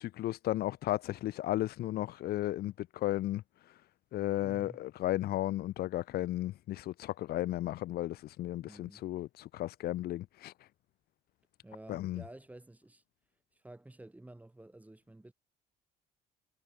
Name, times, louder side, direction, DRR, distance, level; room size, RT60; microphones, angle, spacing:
voice 1, 0.0-3.4 4.1-10.5 11.9-12.2, left 15 dB, 70° left, 0.9 m, -34 dB
voice 2, 4.4-4.9 8.6-9.0 11.6-13.0 13.5-15.3, right 1 dB, 10° right, 4.7 m, -52 dB
cardioid pair, 110°, 17 cm